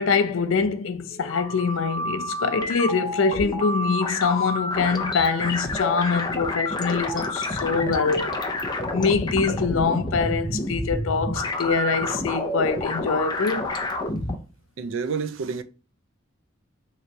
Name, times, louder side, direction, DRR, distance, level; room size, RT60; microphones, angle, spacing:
voice 1, 0.0-8.3 8.9-13.7, left 5 dB, 75° left, 0.5 m, -24 dB
sound 1, 1.1-14.4, left 1 dB, 20° left, 0.5 m, -29 dB
voice 2, 14.8-15.6, right 5 dB, 70° right, 0.4 m, -28 dB
3.2 x 3.0 x 3.9 m
head